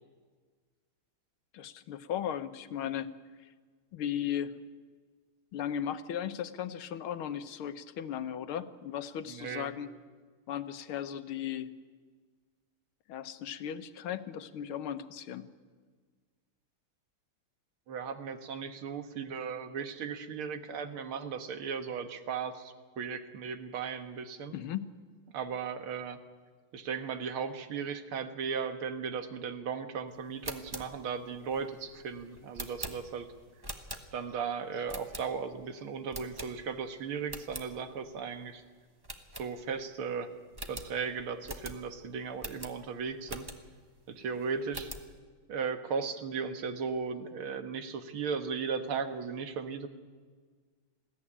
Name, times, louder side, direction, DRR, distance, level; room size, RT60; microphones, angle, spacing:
voice 1, 1.5-3.1 3.9-4.5 5.5-9.9 10.5-11.7 13.1-15.5 24.5-24.9, left 9 dB, 75° left, 11 dB, 1.8 m, -36 dB
voice 2, 9.3-9.7 17.9-24.6 25.3-26.2 26.7-33.3 34.1-38.6 39.4-40.3 40.7-43.5 44.1-44.9 45.5-49.9, right 6 dB, 75° right, 8 dB, 2.2 m, -36 dB
sound 1, 30.3-34.4 34.9-35.6 36.1-36.9 37.2-37.7 38.1-38.2 38.5-38.6 39.0-39.9 40.2-40.3 40.5-43.8 44.3-45.1, right 1 dB, 15° right, 1.1 m, -44 dB
21.0 x 15.5 x 10.0 m, 1.5 s
omnidirectional pair, 2.4 m